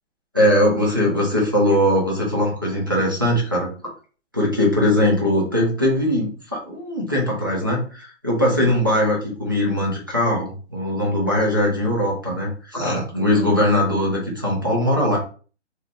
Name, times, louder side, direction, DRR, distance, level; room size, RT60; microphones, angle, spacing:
voice 1, 0.3-3.7 4.3-15.2, left 1 dB, 20° right, -4 dB, 0.3 m, -20 dB
2.4 x 2.3 x 3.1 m, 0.40 s
hypercardioid pair, 145°, 37 cm